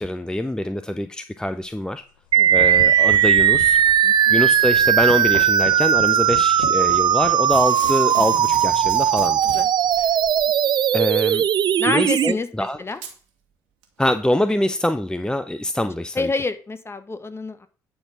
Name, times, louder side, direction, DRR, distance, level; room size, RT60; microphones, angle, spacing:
voice 1, 0.0-2.0 2.5-3.8 4.3-9.4 10.0-10.1 10.9-11.4 11.9-12.8 14.0-16.3, left 1 dB, 5° left, 10 dB, 0.6 m, -24 dB
sound 1, 1.4-1.6 2.2-10.6, left 5 dB, 80° left, 1.2 m, -39 dB
sound 2, 2.3-12.3, right 9 dB, 50° right, 0.5 m, -18 dB
Packing tape duct tape / Tearing, 5.8-6.3 7.5-10.0 11.2-11.3 12.2-12.3 12.9-13.2 13.8-13.9, right 6 dB, 75° right, 1.7 m, -39 dB
voice 2, 11.8-13.0 16.1-17.7, left 3 dB, 25° left, 11 dB, 1.1 m, -28 dB
9.8 x 4.3 x 5.9 m, 0.39 s
figure-of-eight pair, 45°, 10 cm